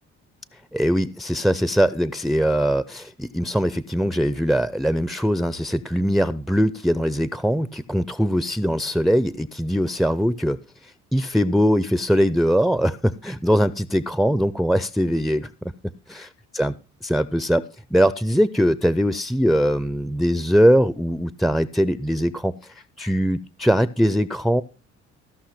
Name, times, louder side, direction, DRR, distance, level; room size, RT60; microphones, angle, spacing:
voice 1, 0.7-10.6 11.1-15.5 16.1-16.3 16.5-16.7 17.0-17.6 17.9-22.5 23.0-24.6, equal, ahead, 16 dB, 0.5 m, -21 dB
16.0 x 5.8 x 5.8 m, 0.35 s
cardioid pair, 90°, 30 cm